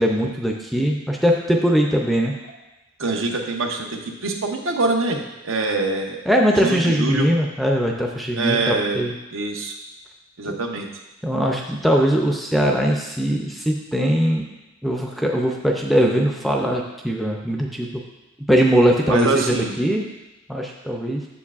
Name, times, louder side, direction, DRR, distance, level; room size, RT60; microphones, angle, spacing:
voice 1, 0.0-2.3 6.3-9.1 10.4-10.6 11.2-14.4 14.8-17.9 18.5-20.0 20.5-21.2, equal, ahead, 0 dB, 0.4 m, -20 dB
voice 2, 3.0-6.2 6.6-7.3 8.4-9.0 9.3-9.7 10.4-10.9 19.0-19.7, right 3 dB, 75° right, 3 dB, 0.8 m, -24 dB
7.1 x 7.0 x 2.4 m, 1.0 s
head